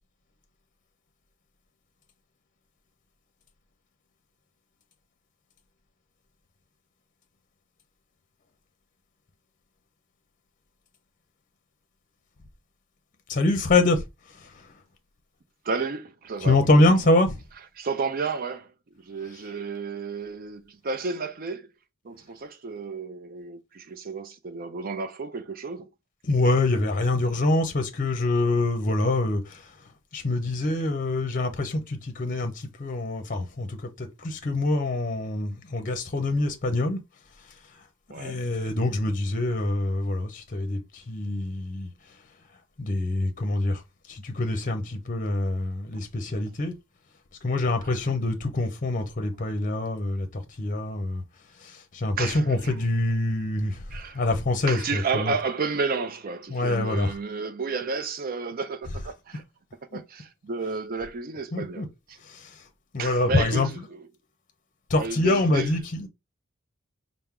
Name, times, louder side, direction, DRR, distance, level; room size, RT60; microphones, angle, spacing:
voice 1, 13.3-14.7 16.4-17.4 19.2-19.4 26.2-29.8 30.1-37.0 37.4-37.8 38.1-41.9 42.8-43.8 44.1-46.7 47.4-51.2 51.6-55.3 56.5-57.2 58.9-59.1 59.9-60.0 61.5-61.9 62.2-62.6 62.9-63.9 64.9-66.1, left 2 dB, 40° left, 0.6 m, -25 dB
voice 2, 15.6-16.6 17.8-18.7 19.0-21.7 22.0-25.9 38.1-38.4 52.2-52.4 53.9-54.2 54.7-59.4 59.9-62.2 63.0-64.0 64.9-65.7, right 4 dB, 45° right, 0.5 m, -32 dB
4.4 x 2.1 x 3.6 m
head